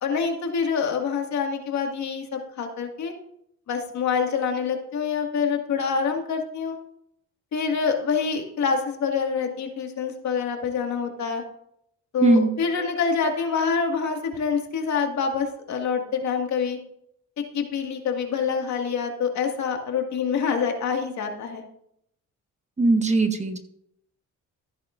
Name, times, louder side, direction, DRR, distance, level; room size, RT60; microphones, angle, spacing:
voice 1, 0.0-3.1 3.7-6.8 7.5-11.4 12.1-16.8 17.4-21.6, left 5 dB, 65° left, 3 dB, 2.0 m, -26 dB
voice 2, 22.8-23.6, right 2 dB, 25° right, 6 dB, 1.2 m, -20 dB
14.0 x 10.0 x 2.6 m, 0.73 s
cardioid pair, 90°, 30 cm